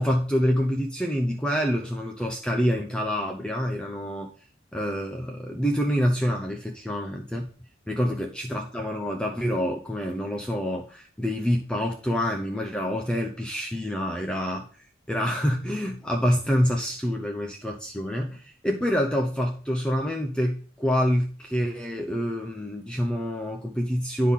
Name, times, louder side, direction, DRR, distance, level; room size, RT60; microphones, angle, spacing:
voice 1, 0.0-4.3 4.7-7.5 7.9-24.3, equal, 5° left, 2 dB, 0.6 m, -27 dB
9.9 x 3.7 x 5.7 m, 0.42 s
head